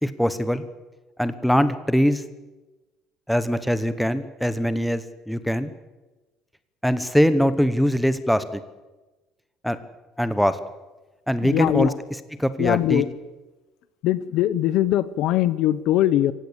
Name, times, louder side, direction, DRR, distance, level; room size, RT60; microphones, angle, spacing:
voice 1, 0.0-0.6 1.2-2.2 3.3-5.7 6.8-8.6 9.6-9.8 10.2-10.6 11.3-11.9 12.4-13.0, equal, ahead, 12 dB, 1.0 m, -22 dB
voice 2, 11.4-12.0 12.6-13.1 14.0-16.3, left 13 dB, 60° left, 17 dB, 0.9 m, -21 dB
25.5 x 16.0 x 8.2 m, 1.2 s
cardioid pair, 170°, 0 cm